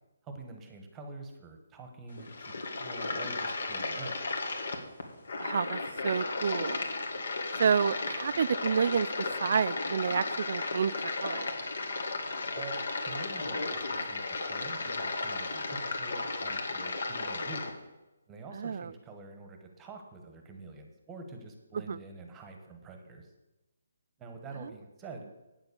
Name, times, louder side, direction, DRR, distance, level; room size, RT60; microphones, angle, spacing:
voice 1, 0.2-4.2 12.5-12.8 13.0-17.7 18.3-23.3 24.2-25.3, right 3 dB, 10° right, 5 dB, 1.1 m, -46 dB
sound 1, 2.1-17.7, left 3 dB, 65° left, 2.0 m, -34 dB
voice 2, 5.4-6.8 7.6-9.1 9.4-10.9 11.2-11.5 18.6-18.9 21.9-22.0, right 6 dB, 50° right, 16 dB, 0.4 m, -29 dB
9.0 x 7.1 x 6.9 m, 1.0 s
hypercardioid pair, 165°, 0 cm